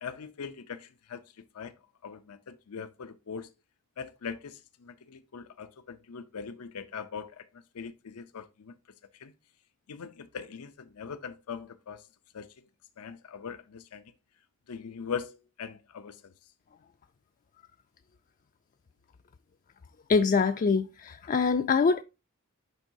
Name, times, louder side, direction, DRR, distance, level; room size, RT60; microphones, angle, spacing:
voice 1, 0.0-1.7 2.0-3.5 4.0-7.4 7.7-8.7 9.2-9.3 9.9-12.1 12.3-12.5 13.0-14.0 14.7-16.3, left 6 dB, 90° left, 0.5 m, -41 dB
voice 2, 20.1-22.0, left 5 dB, 35° left, 0.3 m, -24 dB
10.5 x 3.8 x 2.6 m
head